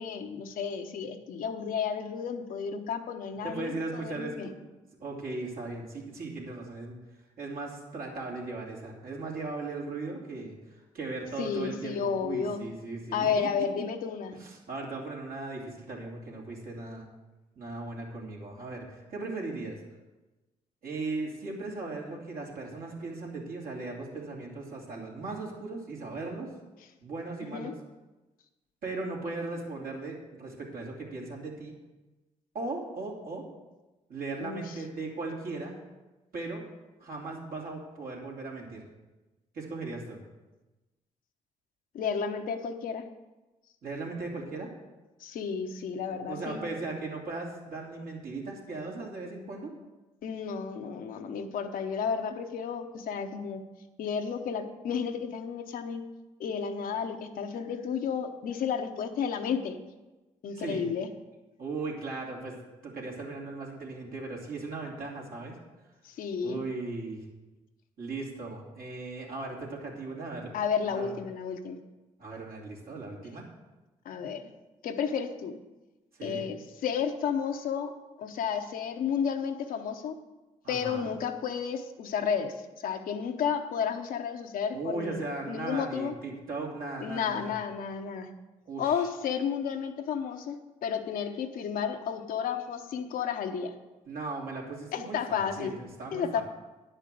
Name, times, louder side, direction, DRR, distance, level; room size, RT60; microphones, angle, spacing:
voice 1, 0.0-4.5 11.4-12.6 13.1-14.4 27.4-27.7 34.4-34.7 41.9-43.1 45.2-46.6 50.2-53.6 54.0-56.0 56.4-59.8 60.4-61.1 66.0-66.6 70.5-71.8 74.0-74.4 74.8-75.6 76.2-77.9 78.2-80.2 80.7-85.2 85.5-86.1 87.0-88.3 88.8-93.7 94.9-95.7 96.1-96.4, left 7 dB, 70° left, 6 dB, 1.0 m, -32 dB
voice 2, 3.4-4.6 5.0-7.0 7.4-10.6 10.9-13.5 14.4-17.1 17.6-19.8 20.8-26.5 27.0-27.7 28.8-31.7 32.5-33.4 34.1-35.8 36.3-36.6 37.0-38.8 39.5-40.2 43.8-44.7 46.1-49.7 60.5-60.8 61.6-62.6 62.8-65.6 66.4-67.2 68.0-70.5 70.9-71.1 72.2-73.4 76.2-76.4 80.6-81.1 84.7-87.5 88.7-88.9 94.1-96.4, right 3 dB, 70° right, -3 dB, 3.0 m, -37 dB
10.0 x 5.4 x 7.7 m, 1.1 s
supercardioid pair, 55°, 15 cm